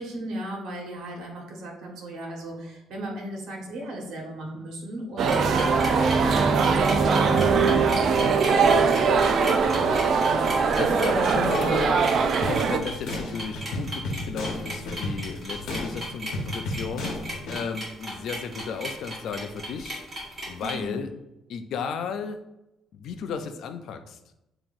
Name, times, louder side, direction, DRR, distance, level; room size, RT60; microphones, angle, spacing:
voice 1, 0.0-8.9 20.6-21.0, right 1 dB, 75° right, -1 dB, 1.3 m, -37 dB
sound 1, 5.2-20.7, right 1 dB, 25° right, 1.5 m, -36 dB
sound 2, 5.2-12.8, right 5 dB, 50° right, 0.4 m, -21 dB
voice 2, 9.5-10.0 10.8-12.0 12.4-17.2 17.5-20.1 20.5-21.1 21.5-22.4 22.9-24.2, left 6 dB, 60° left, 8 dB, 0.4 m, -34 dB
sound 3, 12.4-17.6, left 1 dB, 80° left, 1.0 m, -33 dB
7.1 x 2.9 x 2.5 m, 0.89 s
cardioid pair, 150°, 0 cm